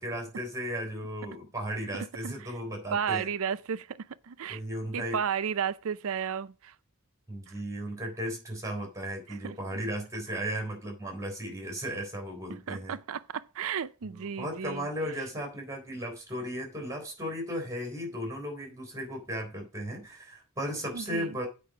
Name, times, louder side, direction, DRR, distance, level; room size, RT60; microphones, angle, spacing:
voice 1, 0.0-3.3 4.5-5.2 7.3-13.0 14.0-21.5, equal, 15° right, 3.5 m, -35 dB
voice 2, 2.9-4.6 4.9-6.7 9.3-9.6 12.7-14.9 20.9-21.4, right 7 dB, 65° right, 0.5 m, -33 dB
8.5 x 5.2 x 5.8 m
head